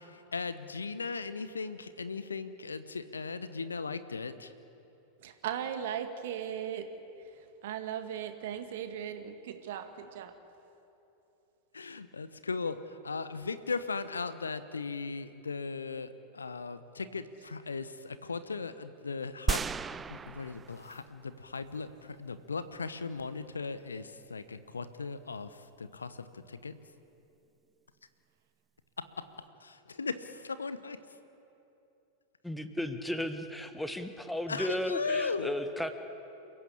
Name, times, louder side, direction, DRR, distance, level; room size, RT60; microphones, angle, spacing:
voice 1, 0.0-4.5 11.7-19.6 20.1-26.7 29.6-31.0 34.5-35.5, left 4 dB, 75° left, 13 dB, 1.0 m, -37 dB
voice 2, 5.2-6.9 7.6-10.3, right 9 dB, 55° right, 7 dB, 2.0 m, -37 dB
sound 1, 19.5-21.2 21.7-21.8, right 5 dB, 15° right, 0.4 m, -34 dB
voice 3, 32.4-35.9, left 1 dB, 5° left, 8 dB, 1.5 m, -34 dB
29.0 x 15.0 x 8.6 m, 2.9 s
figure-of-eight pair, 90°, 0 cm